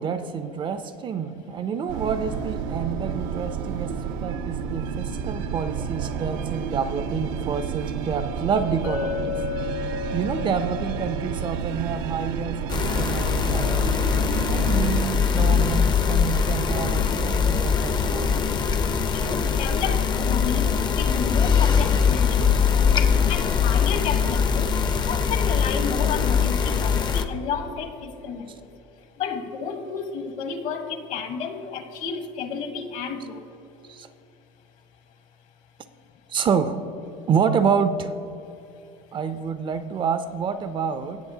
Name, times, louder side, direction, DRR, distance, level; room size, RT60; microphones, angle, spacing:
voice 1, 0.0-9.4 10.1-13.9 14.5-18.4 33.9-34.1 36.3-36.8 37.3-38.1 39.1-41.2, right 6 dB, 30° right, 11 dB, 0.5 m, -28 dB
sound 1, 1.9-15.1, right 6 dB, 80° right, 0.5 m, -30 dB
Chink clink, 8.8-13.1, left 8 dB, 90° left, 1.2 m, -35 dB
sound 2, 12.7-27.2, left 6 dB, 30° left, 0.5 m, -22 dB
voice 2, 19.1-22.5 22.7-23.0 23.3-24.7 25.1-28.5 29.2-33.4, left 6 dB, 55° left, 7 dB, 1.0 m, -31 dB
17.5 x 6.6 x 2.7 m, 2.7 s
supercardioid pair, 110°, 15 cm